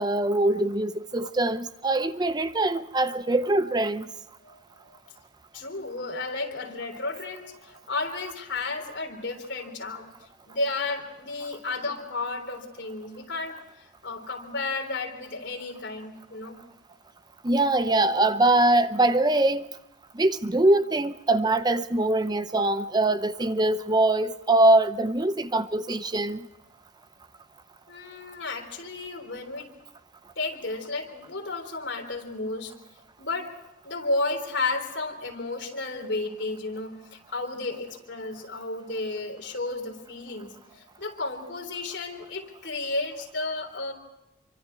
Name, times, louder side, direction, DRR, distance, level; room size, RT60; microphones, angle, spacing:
voice 1, 0.0-4.1 17.4-19.7 20.1-26.5, right 2 dB, 20° right, 0.7 m, -23 dB
voice 2, 5.5-10.1 10.5-13.6 14.0-16.6 27.9-29.7 30.4-32.7 33.2-33.5 33.8-43.9, left 3 dB, 65° left, 3.9 m, -32 dB
27.0 x 24.5 x 4.7 m
head